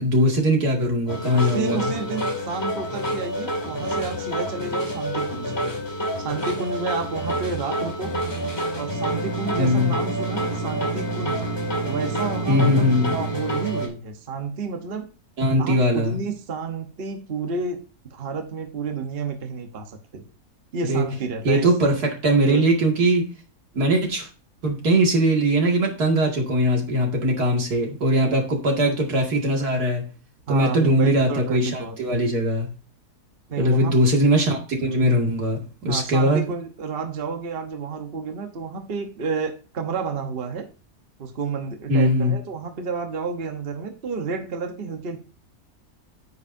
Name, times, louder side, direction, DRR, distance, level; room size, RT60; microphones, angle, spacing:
voice 1, 0.0-1.9 9.6-9.9 12.5-13.1 15.4-16.2 20.8-21.0 21.4-23.3 23.7-24.3 24.6-30.0 30.5-32.7 33.6-36.5 41.9-42.3, equal, 85° right, 0 dB, 2.7 m, -20 dB
sound 1, 1.1-13.9, right 1 dB, 15° left, 2.4 m, -28 dB
voice 2, 1.3-5.5 6.2-8.1 8.7-11.4 11.9-15.1 15.6-17.8 18.1-20.2 20.7-21.7 22.4-22.7 30.5-32.3 33.5-34.0 35.9-40.7 41.2-45.2, right 5 dB, 40° right, 5 dB, 1.2 m, -30 dB
9.5 x 8.0 x 2.7 m, 0.34 s
omnidirectional pair, 1.6 m